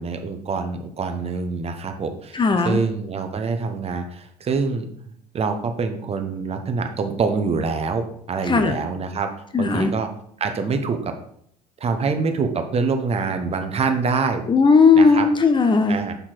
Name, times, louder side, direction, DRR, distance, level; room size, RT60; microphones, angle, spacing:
voice 1, 0.0-4.9 5.3-9.3 9.6-10.1 10.4-11.1 11.8-14.4 14.9-15.3 15.9-16.2, right 4 dB, 30° right, 7 dB, 1.0 m, -25 dB
voice 2, 2.3-2.8 8.5-8.7 9.5-9.9 14.5-16.0, left 4 dB, 25° left, 7 dB, 0.8 m, -16 dB
6.8 x 5.7 x 4.6 m, 0.67 s
figure-of-eight pair, 60°, 20 cm